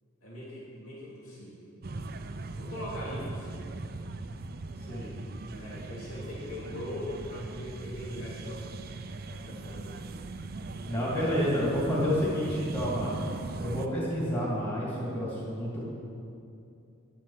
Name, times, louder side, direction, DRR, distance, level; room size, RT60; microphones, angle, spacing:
voice 1, 0.2-1.7 2.6-3.7 5.5-8.6 9.3-10.0, left 1 dB, 80° left, -6 dB, 3.1 m, -41 dB
sound 1, 1.8-13.9, right 2 dB, 45° right, 0.5 m, -39 dB
voice 2, 10.9-13.1 13.6-15.8, equal, 25° left, -7 dB, 2.7 m, -29 dB
11.0 x 7.4 x 7.5 m, 2.6 s
head